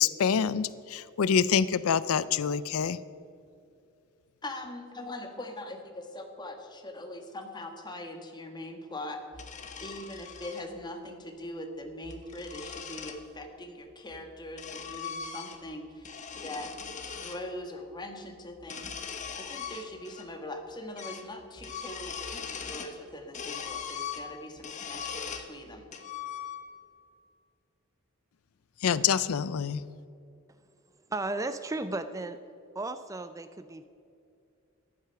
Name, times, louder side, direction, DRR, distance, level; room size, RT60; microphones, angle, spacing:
voice 1, 0.0-3.0 28.8-29.8, left 7 dB, 85° left, 17 dB, 0.4 m, -26 dB
voice 2, 4.4-9.5 9.8-16.7 17.2-25.9, left 1 dB, 20° left, 4 dB, 1.5 m, -42 dB
sound 1, 9.3-10.7 11.9-13.2 14.1-15.7 16.0-17.4 18.6-20.3 20.5-20.6 21.0-21.3 21.6-23.0 23.3-25.5 25.9-26.9, left 6 dB, 35° left, 1.2 m, -40 dB
voice 3, 31.1-32.4 32.7-33.8, right 2 dB, 15° right, 10 dB, 0.4 m, -34 dB
14.0 x 11.0 x 5.8 m, 2.5 s
head